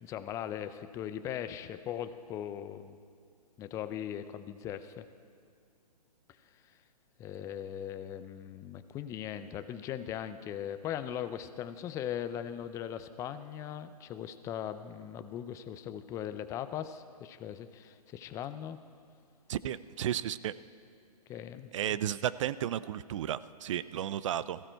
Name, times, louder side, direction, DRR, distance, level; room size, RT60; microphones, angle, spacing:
voice 1, 0.0-3.0 3.6-5.1 7.2-18.8 21.3-21.7, left 10 dB, 15° left, 11 dB, 0.5 m, -39 dB
voice 2, 19.5-20.5 21.7-24.6, right 11 dB, 50° right, 17 dB, 0.5 m, -33 dB
20.5 x 15.0 x 4.5 m, 2.3 s
hypercardioid pair, 140°, 20 cm